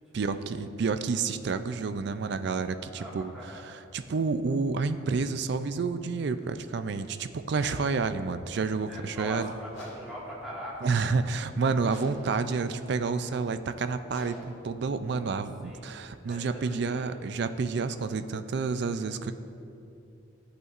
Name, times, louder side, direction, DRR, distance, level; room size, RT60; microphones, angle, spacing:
voice 1, 0.1-9.5 10.8-19.3, right 4 dB, 55° right, 11 dB, 0.3 m, -29 dB
voice 2, 2.8-3.6 8.9-11.2 15.6-15.9 16.2-17.1, equal, 5° right, -8 dB, 1.8 m, -42 dB
sound 1, 7.5-16.2, equal, 60° left, 2.0 m, -50 dB
14.0 x 8.0 x 2.5 m, 2.7 s
head